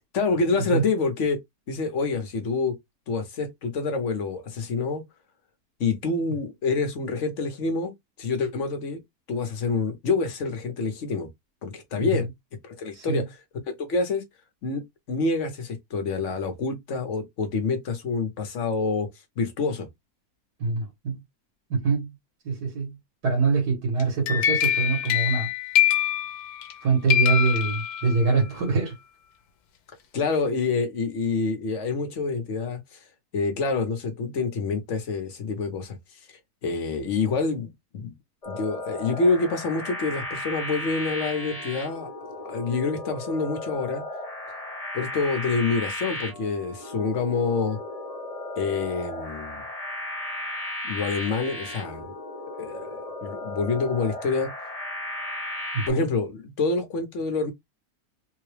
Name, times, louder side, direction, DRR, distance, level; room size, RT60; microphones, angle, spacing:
voice 1, 0.1-1.4 1.7-2.8 3.1-5.0 5.8-7.9 8.2-9.0 9.3-11.3 11.6-12.3 12.6-13.3 13.7-14.2 14.6-19.1 19.4-19.9 30.1-33.0 33.3-36.0 36.3-38.1 38.5-44.0 44.9-47.8 48.6-49.6 50.8-52.1 52.6-54.5 55.9-57.5, left 4 dB, 55° left, 1.2 m, -27 dB
voice 2, 12.9-13.3 20.6-21.2 21.7-22.1 22.5-23.0 23.2-25.5 26.8-29.0 55.7-56.0, right 4 dB, 80° right, 1.9 m, -24 dB
sound 1, 24.0-26.8 27.1-28.4, left 11 dB, 80° left, 1.2 m, -24 dB
sound 2, 38.4-55.9, left 1 dB, 30° left, 0.7 m, -35 dB
3.7 x 2.3 x 3.2 m
omnidirectional pair, 1.7 m